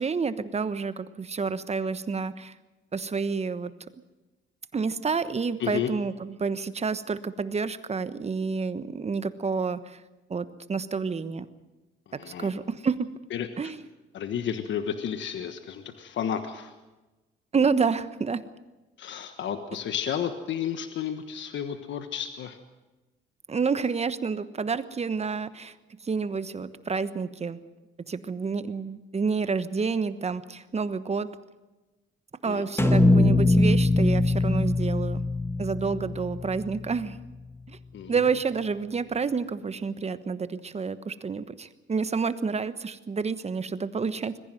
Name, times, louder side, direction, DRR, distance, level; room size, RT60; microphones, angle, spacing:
voice 1, 0.0-2.5 2.9-3.7 4.7-10.0 10.3-11.5 12.3-13.1 13.6-13.8 17.5-18.4 23.5-25.7 26.0-27.6 28.1-31.3 32.4-35.2 35.6-37.2 37.7-37.8 38.1-44.4, right 5 dB, 35° right, 13 dB, 1.2 m, -29 dB
voice 2, 12.2-12.5 13.3-13.5 14.1-16.7 19.0-22.6 32.5-32.6 37.9-38.2, left 8 dB, 70° left, 8 dB, 1.4 m, -32 dB
sound 1, 32.8-37.0, left 2 dB, 10° left, 1.9 m, -22 dB
21.5 x 15.0 x 9.1 m, 1.1 s
cardioid pair, 90°, 20 cm